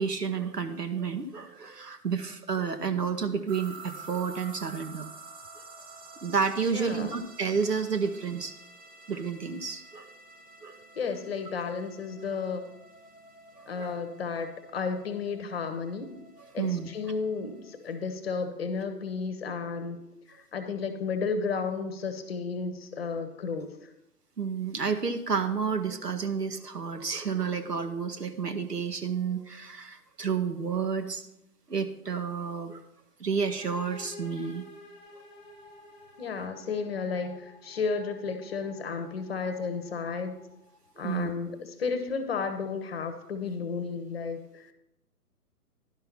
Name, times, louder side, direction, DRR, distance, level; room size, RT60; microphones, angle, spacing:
voice 1, 0.0-5.1 6.2-8.5 9.1-10.1 10.6-10.8 13.8-13.9 16.6-16.9 24.4-31.2 31.7-32.8 33.2-34.6 41.0-41.3, right 6 dB, 80° right, 8 dB, 1.1 m, -30 dB
sound 1, 3.5-18.1, right 3 dB, 20° right, 0.7 m, -50 dB
voice 2, 6.7-7.2 11.0-12.7 13.7-16.1 16.5-20.0 20.5-23.7 36.2-40.3 41.0-44.7, left 5 dB, 40° left, 9 dB, 1.0 m, -33 dB
sound 2, 33.4-41.0, left 1 dB, 10° left, 0.9 m, -51 dB
11.0 x 5.7 x 5.7 m, 0.82 s
figure-of-eight pair, 130°, 47 cm